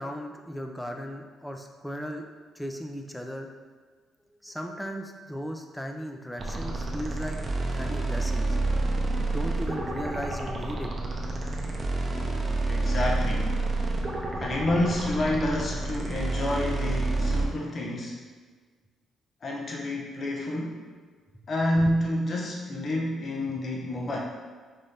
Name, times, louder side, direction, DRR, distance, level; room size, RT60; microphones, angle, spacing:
voice 1, 0.0-2.3 2.6-3.5 4.4-8.6 9.2-10.9, equal, 5° left, 3 dB, 0.5 m, -36 dB
sound 1, 6.4-17.5, right 2 dB, 30° right, 0.7 m, -29 dB
voice 2, 12.6-13.5 14.4-18.2 19.4-20.8 21.5-24.2, left 1 dB, 45° left, -1 dB, 0.6 m, -28 dB
5.4 x 2.6 x 3.3 m, 1.5 s
cardioid pair, 90°, 0 cm